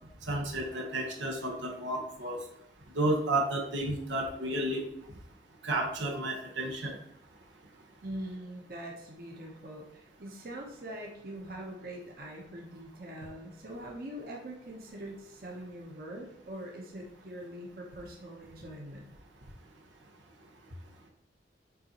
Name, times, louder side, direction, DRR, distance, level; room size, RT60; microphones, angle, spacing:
voice 1, 0.2-2.4 2.9-4.9 5.6-7.0, right 1 dB, 85° right, 0 dB, 1.3 m, -31 dB
voice 2, 8.0-19.1, right 1 dB, 50° right, -1 dB, 1.1 m, -43 dB
7.4 x 4.1 x 3.0 m, 0.78 s
head